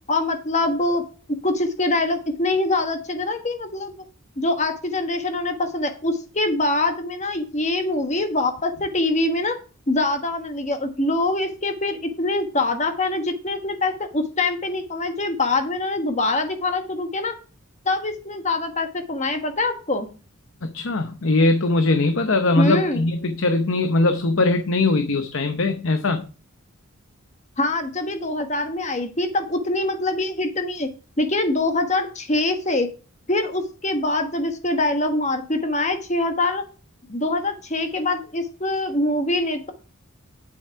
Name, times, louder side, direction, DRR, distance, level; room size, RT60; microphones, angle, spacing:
voice 1, 0.1-1.0 1.4-4.0 4.4-9.6 9.9-17.3 17.8-20.1 22.6-23.0 27.6-30.9 31.2-32.9 33.3-36.6 37.1-39.7, left 2 dB, 30° left, 6 dB, 1.2 m, -24 dB
voice 2, 20.6-26.3, left 2 dB, 60° left, 7 dB, 0.8 m, -21 dB
9.3 x 7.1 x 4.6 m, 0.37 s
head